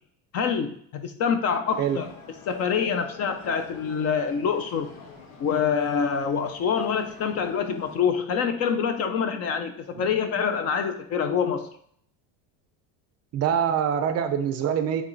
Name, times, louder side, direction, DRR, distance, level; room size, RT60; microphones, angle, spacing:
voice 1, 0.3-2.1 2.5-4.9 5.4-11.7, left 6 dB, 35° left, 8 dB, 0.4 m, -26 dB
sound 1, 1.7-8.0, left 5 dB, 80° left, 1.5 m, -46 dB
voice 2, 13.3-15.0, right 8 dB, 35° right, 8 dB, 0.5 m, -24 dB
8.6 x 3.1 x 3.9 m, 0.66 s
cardioid pair, 155°, 43 cm